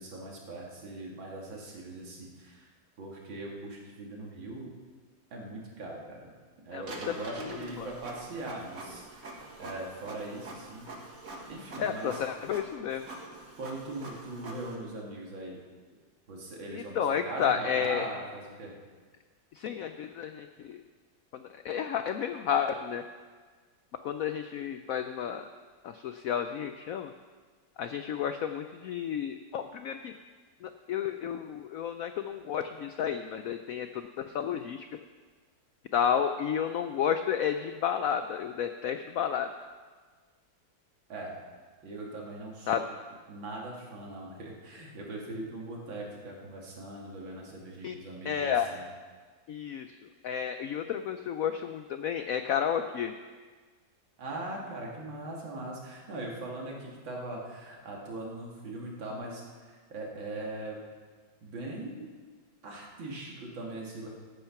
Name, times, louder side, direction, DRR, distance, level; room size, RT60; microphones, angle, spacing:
voice 1, 0.0-2.7 3.0-4.7 5.3-6.3 6.6-9.3 9.6-10.9 11.2-12.2 13.6-15.6 16.3-18.7 41.1-41.3 41.8-42.8 43.3-48.8 54.2-60.8 61.4-62.1 62.6-64.1, right 2 dB, 85° right, -2 dB, 2.9 m, -40 dB
Printer, 6.8-14.7, right 2 dB, 50° right, 2.0 m, -45 dB
voice 2, 11.8-13.0 16.7-18.1 19.5-20.8 21.3-23.0 24.0-25.4 25.8-27.1 27.8-30.1 30.6-34.9 35.9-39.5 42.7-42.8 47.8-47.9 48.2-48.7 49.5-49.9 50.2-53.1, left 8 dB, 90° left, 8 dB, 0.7 m, -31 dB
14.0 x 8.8 x 5.8 m, 1.5 s
omnidirectional pair, 2.1 m